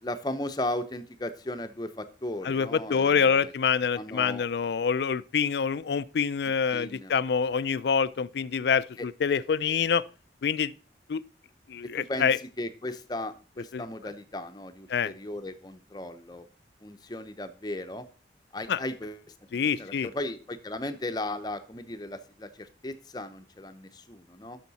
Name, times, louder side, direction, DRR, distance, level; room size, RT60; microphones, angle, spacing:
voice 1, 0.0-3.5 4.0-4.4 6.7-7.1 9.0-9.1 11.9-12.3 12.6-16.4 16.8-18.1 18.5-19.3 19.8-24.6, left 1 dB, 20° left, 0.7 m, -36 dB
voice 2, 2.4-10.0 10.4-10.7 11.1-11.2 11.7-12.4 13.7-13.8 14.9-15.1 18.7-18.8 19.5-20.1, left 6 dB, 70° left, 0.4 m, -26 dB
11.5 x 6.5 x 4.1 m
head